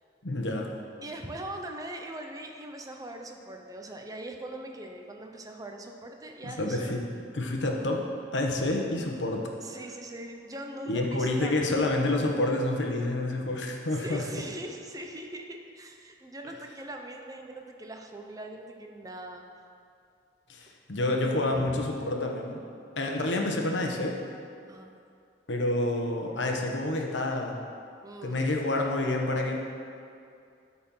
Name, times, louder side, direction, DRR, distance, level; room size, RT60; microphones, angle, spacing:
voice 1, 0.2-0.7 6.4-7.0 7.3-9.5 10.9-14.4 20.5-22.6 23.0-24.2 25.5-27.6 28.2-29.6, left 2 dB, 85° left, 1 dB, 1.1 m, -28 dB
voice 2, 1.0-6.9 9.6-12.0 13.9-19.4 21.5-21.8 24.7-24.9 28.0-28.4, right 1 dB, 20° right, 3 dB, 0.7 m, -41 dB
13.0 x 4.4 x 5.6 m, 2.4 s
head